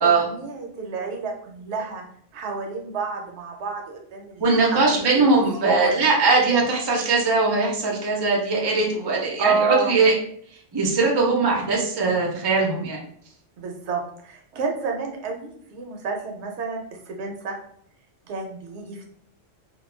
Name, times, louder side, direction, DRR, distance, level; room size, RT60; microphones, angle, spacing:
voice 1, 0.0-2.0 2.3-5.3 5.6-6.0 9.4-9.9 13.6-17.6 18.3-19.1, right 4 dB, 70° right, 1 dB, 0.8 m, -30 dB
voice 2, 4.4-10.1 10.7-13.0, right 3 dB, 35° right, -1 dB, 0.4 m, -20 dB
2.3 x 2.1 x 3.1 m, 0.63 s
omnidirectional pair, 1.3 m